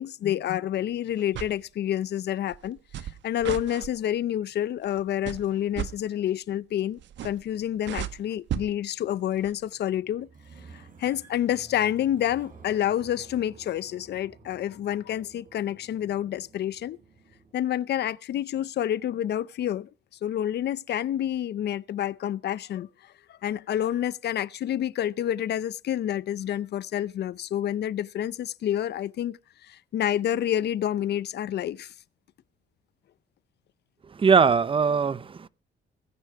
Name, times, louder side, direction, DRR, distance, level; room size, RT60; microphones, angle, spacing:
voice 1, 0.0-10.3 10.7-17.0 17.5-19.9 20.2-31.9, left 11 dB, 65° left, 0.6 m, -28 dB
sound 1, 1.2-1.6 2.5-3.9 4.8-5.0 5.3-5.9 7.0-7.5 7.8-8.7 9.4-9.5, right 11 dB, 80° right, 1.5 m, -34 dB
sound 2, 9.0-17.5, right 3 dB, 50° right, 7.3 m, -53 dB
voice 2, 34.1-35.5, right 5 dB, 30° right, 0.8 m, -21 dB
19.5 x 10.0 x 4.8 m
cardioid pair, 120°, 19 cm